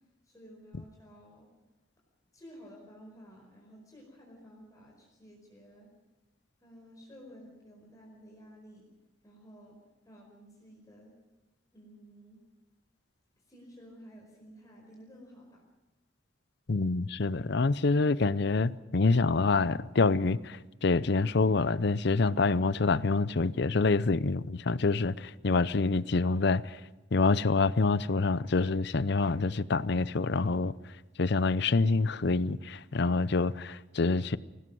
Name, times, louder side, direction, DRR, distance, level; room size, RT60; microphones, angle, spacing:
voice 1, 0.2-1.5 2.3-5.9 6.6-8.8 9.2-9.8 10.0-11.2 11.7-12.4 13.5-15.6, equal, 20° left, 4.8 m, -53 dB
voice 2, 16.7-26.8 27.1-30.7 31.2-34.4, left 3 dB, 60° left, 0.6 m, -26 dB
24.5 x 18.0 x 6.2 m
head